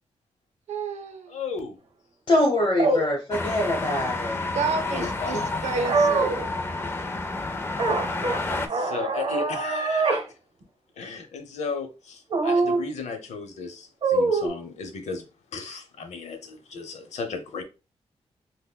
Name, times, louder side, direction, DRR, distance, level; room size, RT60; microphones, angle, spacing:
voice 1, 0.7-1.4 4.5-6.6, right 5 dB, 85° right, 0.6 m, -30 dB
voice 2, 1.3-1.8 2.8-3.0 3.4-3.5 4.6-5.7 8.5-10.2 11.0-17.6, left 4 dB, 85° left, 0.7 m, -35 dB
voice 3, 2.3-4.6 5.0-5.4, left 1 dB, 45° left, 0.9 m, -24 dB
sound 1, 2.8-3.0 5.8-6.3 7.8-8.4 8.7-10.2 10.6-10.7 12.3-12.8 14.0-14.5, right 3 dB, 55° right, 0.9 m, -23 dB
sound 2, 3.3-8.7, left 2 dB, 20° left, 0.4 m, -30 dB
5.6 x 2.1 x 2.2 m
wide cardioid pair, 160°, 11 cm